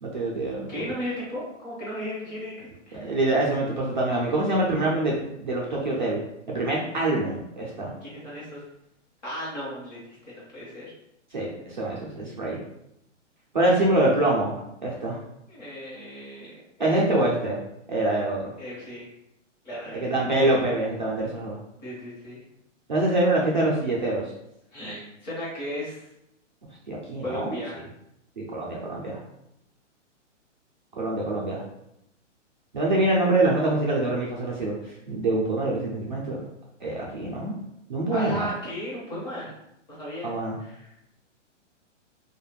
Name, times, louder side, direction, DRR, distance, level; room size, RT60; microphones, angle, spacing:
voice 1, 0.0-0.7 2.9-6.2 6.5-7.9 11.3-12.6 13.5-15.2 16.8-17.6 17.9-18.5 19.9-21.6 22.9-24.3 26.9-27.6 28.4-29.2 31.0-31.6 32.7-34.7 35.1-36.4 36.8-37.5 37.9-38.5 40.2-40.6, right 2 dB, 40° right, -4 dB, 0.4 m, -25 dB
voice 2, 0.7-3.2 8.0-8.6 9.2-10.0 10.3-10.9 15.5-16.9 18.6-19.1 19.6-20.1 21.8-22.4 24.7-26.0 27.2-27.8 38.1-39.5 39.9-40.3 40.6-41.0, equal, 35° left, -7 dB, 1.1 m, -35 dB
2.4 x 2.1 x 3.1 m, 0.81 s
hypercardioid pair, 180°, 37 cm